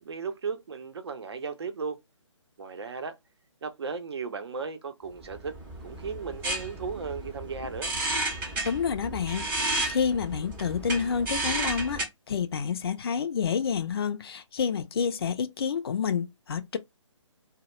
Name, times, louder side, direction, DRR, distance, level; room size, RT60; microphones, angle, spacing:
voice 1, 0.0-2.0 2.6-3.2 3.6-7.9, right 5 dB, 55° right, 0.6 m, -36 dB
sound 1, 5.2-12.0, right 2 dB, 10° right, 0.6 m, -32 dB
voice 2, 8.6-12.0 12.3-16.8, left 6 dB, 50° left, 0.4 m, -29 dB
2.2 x 2.0 x 2.9 m
figure-of-eight pair, 140°, 16 cm